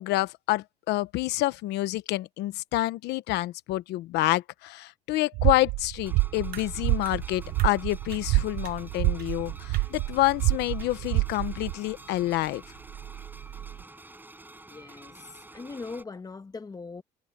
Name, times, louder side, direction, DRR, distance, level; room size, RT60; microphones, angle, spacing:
voice 1, 0.0-12.6, left 17 dB, 85° left, 1.1 m, -28 dB
sound 1, 5.3-11.7, right 23 dB, 85° right, 0.4 m, -27 dB
sound 2, 6.0-16.0, right 2 dB, 10° right, 6.9 m, -49 dB
sound 3, 6.5-13.8, right 11 dB, 60° right, 1.4 m, -46 dB
voice 2, 14.7-17.0, left 4 dB, 20° left, 1.3 m, -40 dB
cardioid pair, 110°, 17 cm